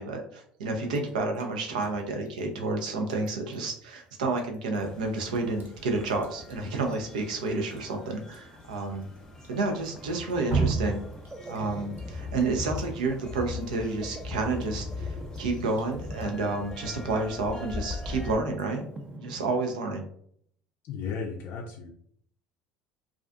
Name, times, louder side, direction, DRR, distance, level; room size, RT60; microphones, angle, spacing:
voice 1, 0.0-9.1 9.5-11.0 11.5-18.8 19.2-20.1, right 3 dB, 80° right, 4 dB, 0.5 m, -30 dB
Drip, 0.9-19.2, right 4 dB, 50° right, 0.9 m, -40 dB
sound 1, 4.8-18.4, left 4 dB, 15° left, 0.8 m, -41 dB
sound 2, 9.2-20.1, right 2 dB, 15° right, 0.4 m, -46 dB
voice 2, 20.8-21.9, left 5 dB, 60° left, 0 dB, 0.4 m, -35 dB
2.3 x 2.3 x 2.4 m, 0.63 s
hypercardioid pair, 70°, 4 cm